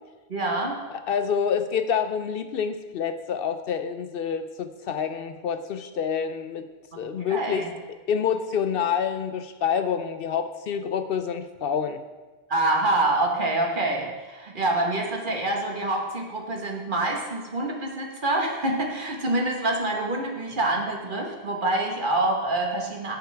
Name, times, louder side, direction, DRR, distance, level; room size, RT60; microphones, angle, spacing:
voice 1, 0.3-0.8 6.9-7.0 7.2-7.7 12.5-23.2, right 2 dB, 50° right, 0 dB, 1.5 m, -26 dB
voice 2, 0.9-6.7 7.0-7.6 8.1-12.0, left 7 dB, 65° left, 9 dB, 0.7 m, -27 dB
16.0 x 5.8 x 3.4 m, 1.3 s
omnidirectional pair, 1.1 m